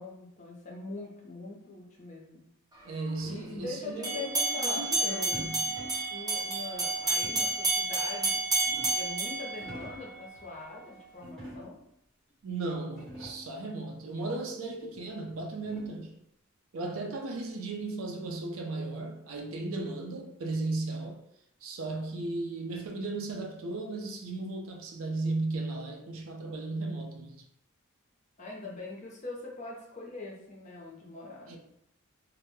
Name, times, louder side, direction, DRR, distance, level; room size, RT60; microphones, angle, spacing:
voice 1, 0.0-2.4 3.2-5.2 6.1-8.4 8.9-11.8 28.4-31.6, left 3 dB, 35° left, 0.5 m, -42 dB
voice 2, 2.8-4.3 4.6-5.6 12.4-16.1 16.7-21.2 21.6-27.4 31.5-31.6, right 2 dB, 70° right, 0.4 m, -35 dB
sound 1, 4.0-10.3, right 2 dB, 20° right, 0.5 m, -30 dB
sound 2, 5.3-6.1 7.2-7.7 8.3-9.1 9.5-10.1 11.2-11.9 12.5-12.6 12.8-13.6 14.9-16.1, right 1 dB, ahead, 1.0 m, -47 dB
2.1 x 2.0 x 3.0 m
head